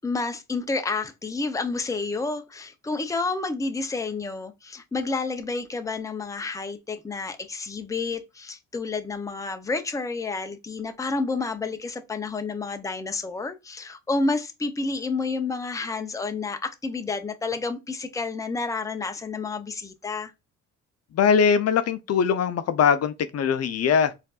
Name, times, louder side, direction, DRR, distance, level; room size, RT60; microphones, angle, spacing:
voice 1, 0.0-20.3, left 3 dB, 10° left, 0.6 m, -30 dB
voice 2, 21.1-24.1, left 6 dB, 55° left, 0.6 m, -21 dB
4.4 x 2.6 x 2.3 m
cardioid pair, 90°, 30 cm